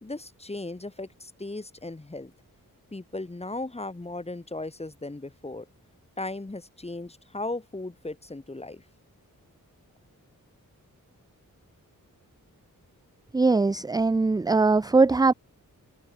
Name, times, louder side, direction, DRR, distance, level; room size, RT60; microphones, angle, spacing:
voice 1, 0.0-2.3 2.9-5.7 6.2-8.8, left 2 dB, 20° left, 1.7 m, -36 dB
voice 2, 13.3-15.3, right 3 dB, 10° right, 0.4 m, -21 dB
wide cardioid pair, 90°, 34 cm